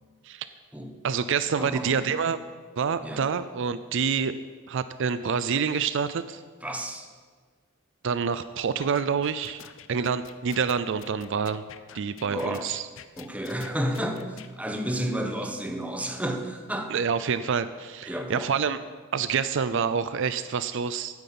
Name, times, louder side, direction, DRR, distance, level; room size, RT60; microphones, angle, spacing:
voice 1, 1.0-2.4 2.8-4.3 4.7-6.4 8.0-9.6 9.9-11.6 11.9-12.9 16.9-18.8 19.1-21.2, right 6 dB, 65° right, 13 dB, 0.5 m, -27 dB
voice 2, 1.6-2.1 3.0-3.2 6.6-7.1 12.2-12.7 13.2-16.9 18.1-18.5, equal, 5° right, 3 dB, 1.2 m, -31 dB
sound 1, 8.8-14.5, left 8 dB, 65° left, 0.6 m, -46 dB
9.6 x 9.2 x 8.5 m, 1.5 s
head